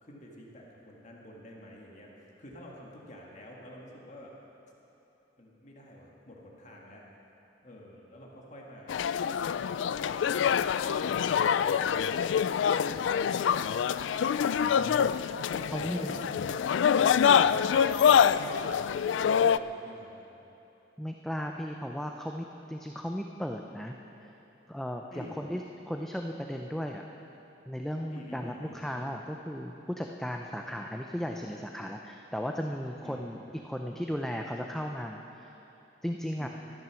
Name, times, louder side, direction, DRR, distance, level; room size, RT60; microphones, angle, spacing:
voice 1, 0.0-2.1 2.4-4.3 5.4-7.0 7.6-9.0 9.4-11.2 11.6-12.1 12.8-14.0 15.5-17.9 18.5-20.4 25.1-25.4 28.1-28.8 33.0-33.3 36.4-36.5, left 1 dB, 40° left, -2 dB, 1.8 m, -49 dB
sound 1, 8.9-19.6, left 7 dB, 80° left, 0.3 m, -25 dB
voice 2, 14.5-15.1 15.7-16.1 21.0-24.0 24.2-24.3 24.7-27.1 27.7-35.5 36.0-36.5, equal, ahead, 2 dB, 0.5 m, -36 dB
14.0 x 12.0 x 6.2 m, 3.0 s
head